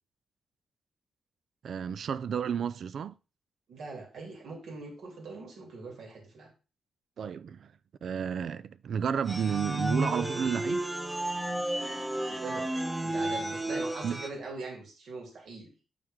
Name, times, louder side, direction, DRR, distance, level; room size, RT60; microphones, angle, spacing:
voice 1, 1.6-3.1 7.2-7.7 8.0-10.8 14.0-14.2, right 7 dB, 60° right, 0.4 m, -31 dB
voice 2, 3.7-6.5 12.3-12.7 13.0-15.7, right 3 dB, 80° right, 2.9 m, -42 dB
sound 1, 9.3-14.3, right 1 dB, 10° right, 0.9 m, -32 dB
7.3 x 5.9 x 3.6 m
cardioid pair, 115°, 0 cm